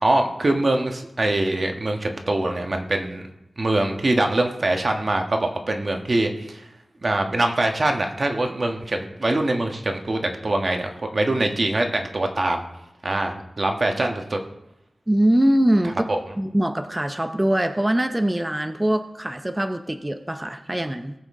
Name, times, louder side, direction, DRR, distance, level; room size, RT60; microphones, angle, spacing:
voice 1, 0.0-3.2 3.6-6.6 7.0-12.6 13.0-14.4 16.1-16.2, right 2 dB, 45° right, 3 dB, 1.4 m, -23 dB
voice 2, 15.1-16.0 16.4-21.1, right 1 dB, 15° right, 7 dB, 0.6 m, -22 dB
19.0 x 7.6 x 3.7 m, 0.88 s
wide cardioid pair, 95°, 0 cm